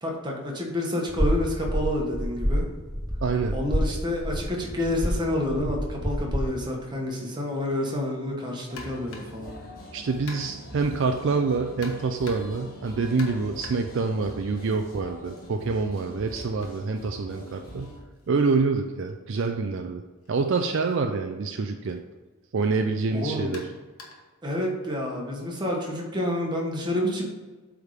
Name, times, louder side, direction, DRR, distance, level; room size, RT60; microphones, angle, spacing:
voice 1, 0.0-2.6 3.5-9.5 23.1-23.5 24.4-27.2, left 1 dB, 20° right, -1 dB, 1.2 m, -29 dB
sound 1, 1.1-6.5, equal, ahead, 0.5 m, -28 dB
voice 2, 3.2-3.6 9.9-18.0 18.3-20.0 20.3-22.0 22.5-23.7, right 4 dB, 55° right, 5 dB, 0.4 m, -26 dB
sound 2, 8.7-18.0, left 1 dB, 40° left, 1.6 m, -43 dB
sound 3, 8.8-9.5 10.3-10.8 11.8-12.7 13.2-14.9 15.3-19.1 20.2-20.4 20.9-21.0 21.9-22.0 23.5-24.4, left 3 dB, 75° left, 1.2 m, -47 dB
8.1 x 3.6 x 4.9 m, 1.3 s
head